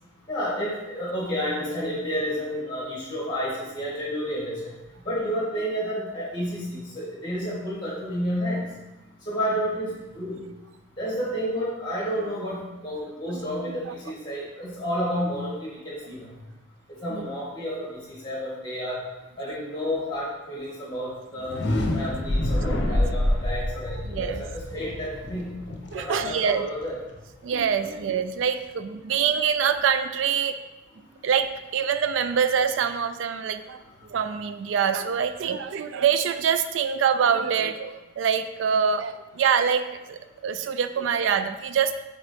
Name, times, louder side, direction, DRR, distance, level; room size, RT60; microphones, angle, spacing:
voice 1, 0.3-4.7 5.0-8.6 9.3-10.4 11.0-16.3 17.0-19.0 19.4-21.6 21.9-25.5 25.9-27.0 27.8-27.9, equal, 20° left, -5 dB, 2.1 m, -30 dB
sound 1, 21.3-27.2, left 1 dB, 60° left, 0.9 m, -27 dB
voice 2, 24.1-24.4 25.9-26.7 27.4-30.6 31.2-33.8 34.1-42.0, right 7 dB, 75° right, 10 dB, 0.3 m, -25 dB
7.4 x 3.8 x 3.5 m, 1.0 s
head